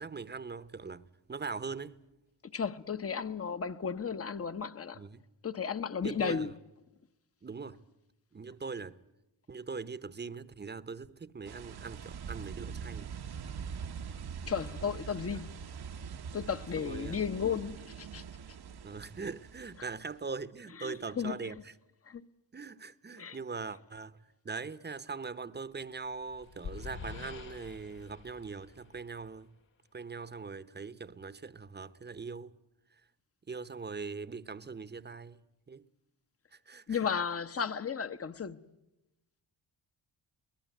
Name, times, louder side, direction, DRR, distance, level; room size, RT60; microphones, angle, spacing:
voice 1, 0.0-2.0 4.9-5.2 6.0-6.5 7.4-7.8 8.3-9.0 9.5-13.1 15.3-15.4 16.8-17.2 18.8-21.7 22.5-24.2 24.4-29.5 29.9-32.5 33.5-35.4 35.7-35.9 36.5-37.0, right 4 dB, 25° right, 1.0 m, -41 dB
voice 2, 2.5-5.0 5.4-6.5 14.5-15.7 16.3-18.2 20.8-21.6 22.1-22.2 23.2-23.4 36.9-38.6, left 6 dB, 30° left, 1.0 m, -34 dB
sound 1, 11.4-20.1, right 7 dB, 60° right, 1.1 m, -43 dB
sound 2, 26.0-29.5, left 5 dB, 80° left, 2.8 m, -46 dB
22.5 x 19.5 x 9.3 m
cardioid pair, 70°, 44 cm